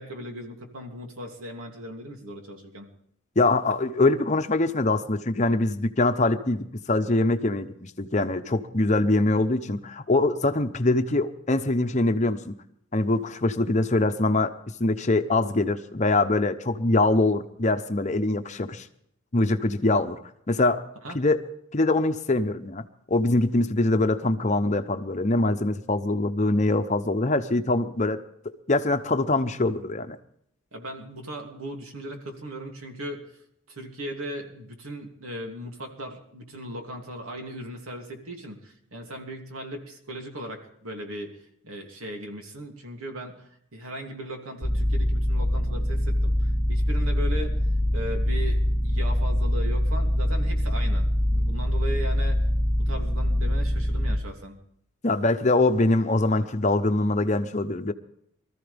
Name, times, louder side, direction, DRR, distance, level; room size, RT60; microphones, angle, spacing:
voice 1, 0.0-2.9 21.0-21.2 30.7-33.2 33.7-41.3 41.6-47.6 47.9-52.4 52.8-54.5, equal, 90° right, 2 dB, 2.8 m, -38 dB
voice 2, 3.4-12.6 12.9-14.5 14.8-18.9 19.3-20.2 20.5-20.8 21.1-21.4 21.7-30.2 55.0-57.9, left 2 dB, 35° left, 9 dB, 0.8 m, -23 dB
sound 1, 44.6-54.2, equal, ahead, 1.3 m, -24 dB
23.5 x 14.0 x 3.5 m, 0.71 s
head